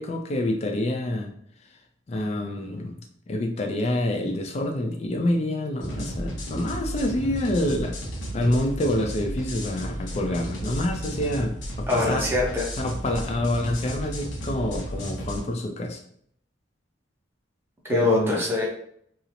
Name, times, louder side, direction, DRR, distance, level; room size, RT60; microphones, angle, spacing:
voice 1, 0.0-1.3 2.1-2.9 3.3-8.0 8.3-12.3 12.8-16.0 17.9-18.4, left 1 dB, 35° left, 4 dB, 0.3 m, -27 dB
sound 1, 5.8-15.4, equal, 70° left, 0.7 m, -33 dB
voice 2, 11.9-12.7 17.8-18.7, left 2 dB, 10° right, -3 dB, 0.6 m, -24 dB
2.8 x 2.0 x 2.4 m, 0.66 s
head